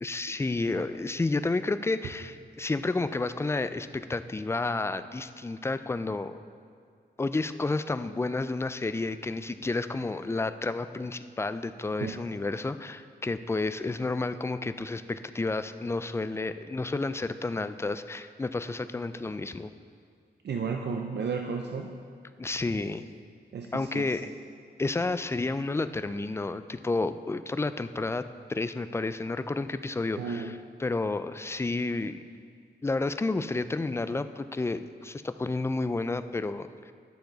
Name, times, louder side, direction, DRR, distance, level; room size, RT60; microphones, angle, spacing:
voice 1, 0.0-6.4 7.2-19.7 22.4-23.0 23.7-24.3 24.8-28.2 28.5-32.2 32.8-36.9, left 3 dB, 15° left, 12 dB, 0.3 m, -31 dB
voice 2, 20.4-21.9 23.5-24.2 30.2-30.5, right 5 dB, 75° right, 3 dB, 0.5 m, -33 dB
11.5 x 6.8 x 3.9 m, 2.2 s
wide cardioid pair, 80°, 18 cm